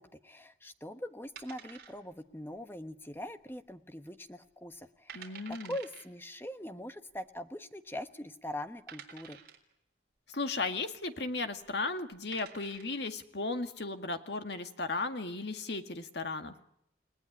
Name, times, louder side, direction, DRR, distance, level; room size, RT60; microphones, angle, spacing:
voice 1, 0.0-9.4, left 1 dB, 10° left, 9 dB, 1.1 m, -42 dB
sound 1, 1.4-2.3 2.6-2.7 3.3-3.7 4.1-4.2 4.7-4.8 5.1-6.1 7.1-7.2 7.9-8.0 8.9-9.7 11.5-11.7 12.1-13.0, right 7 dB, 50° right, 3.9 m, -50 dB
voice 2, 5.1-5.7 10.3-16.5, left 3 dB, 60° left, 7 dB, 2.0 m, -35 dB
29.5 x 18.5 x 10.0 m, 0.75 s
head